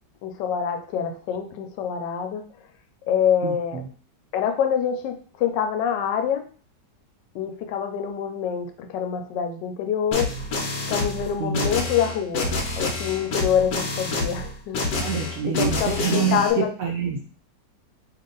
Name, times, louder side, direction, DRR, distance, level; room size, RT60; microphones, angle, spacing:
voice 1, 0.2-2.4 3.1-3.8 4.3-6.4 7.3-10.3 10.9-15.1 15.5-16.7, left 8 dB, 85° left, 6 dB, 1.2 m, -26 dB
voice 2, 3.4-3.9 11.4-11.7 15.0-17.2, right 7 dB, 75° right, -1 dB, 0.8 m, -27 dB
sound 1, 10.1-16.5, left 2 dB, 65° left, 1.2 m, -27 dB
3.0 x 2.8 x 3.7 m, 0.42 s
omnidirectional pair, 1.9 m